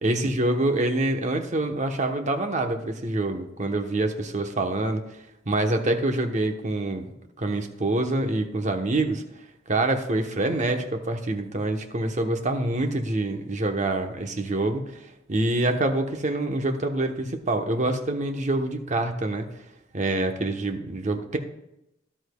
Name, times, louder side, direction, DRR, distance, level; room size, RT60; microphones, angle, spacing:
voice 1, 0.0-5.0 5.5-7.0 7.4-9.2 9.7-14.8 15.3-19.5 19.9-21.4, right 2 dB, 40° right, 5 dB, 1.0 m, -26 dB
13.0 x 11.5 x 2.3 m, 0.84 s
head